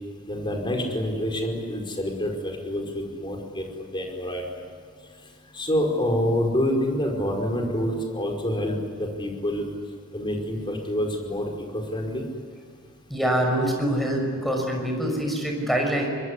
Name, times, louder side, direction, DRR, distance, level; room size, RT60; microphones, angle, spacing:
voice 1, 0.3-4.6 5.5-9.7 10.1-12.3, equal, 25° left, 2 dB, 5.1 m, -27 dB
voice 2, 13.1-16.1, right 1 dB, ahead, 2 dB, 6.0 m, -25 dB
25.0 x 22.0 x 9.9 m, 2.2 s
head